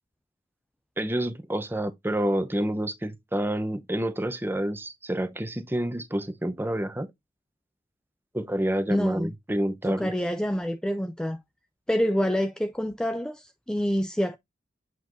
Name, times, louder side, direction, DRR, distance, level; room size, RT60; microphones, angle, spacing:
voice 1, 1.0-7.1 8.3-10.1, right 1 dB, 10° right, 0.8 m, -28 dB
voice 2, 8.9-9.3 9.9-11.4 11.9-14.4, equal, 5° left, 0.4 m, -27 dB
8.2 x 4.6 x 2.6 m
head